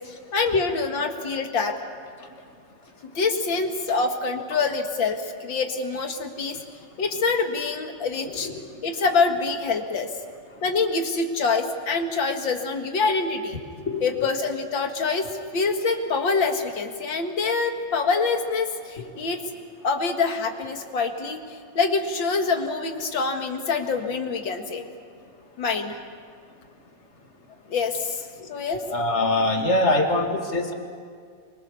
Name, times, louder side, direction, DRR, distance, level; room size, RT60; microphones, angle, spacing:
voice 1, 0.3-1.8 3.0-6.6 7.0-8.5 8.8-10.1 10.6-13.6 14.0-19.4 19.8-24.8 25.6-26.0 27.7-28.8, left 4 dB, 85° left, 5 dB, 2.5 m, -25 dB
voice 2, 28.9-30.7, left 2 dB, 35° left, 2 dB, 2.6 m, -23 dB
26.0 x 24.0 x 7.0 m, 2.2 s
omnidirectional pair, 2.0 m